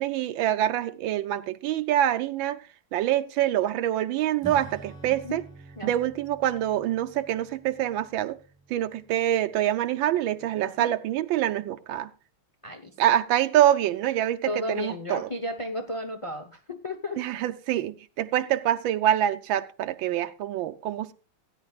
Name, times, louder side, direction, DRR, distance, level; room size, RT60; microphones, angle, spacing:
voice 1, 0.0-2.6 2.9-5.4 5.8-8.4 8.7-12.1 13.0-15.3 17.2-21.1, right 12 dB, 80° right, 9 dB, 1.4 m, -25 dB
Acoustic guitar / Strum, 4.4-10.3, right 3 dB, ahead, 1.2 m, -48 dB
voice 2, 5.0-5.4 5.8-5.9 10.6-10.9 12.6-12.9 14.5-17.2, left 1 dB, 50° left, 5 dB, 0.3 m, -34 dB
17.0 x 9.9 x 2.4 m, 0.34 s
omnidirectional pair, 2.2 m